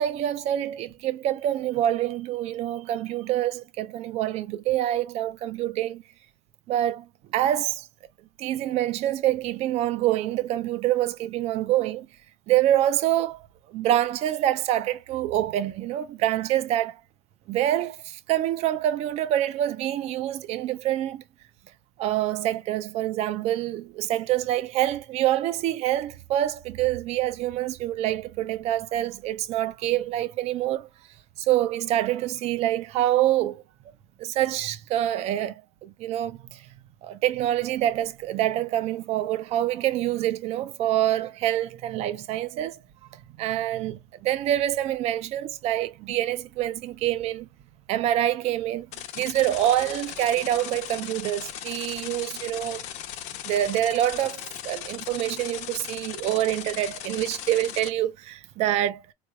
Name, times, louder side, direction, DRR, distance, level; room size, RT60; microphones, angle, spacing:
voice 1, 0.0-6.0 6.7-7.9 8.4-12.1 12.5-17.0 17.5-21.2 22.0-30.9 31.4-33.6 34.2-36.7 37.0-42.8 43.1-47.5 47.9-48.9 49.2-52.8 53.4-59.0, right 13 dB, 40° right, 0.5 m, -26 dB
sound 1, 48.9-57.9, left 11 dB, 45° left, 0.7 m, -38 dB
3.9 x 3.1 x 2.2 m
cardioid pair, 165°, 16 cm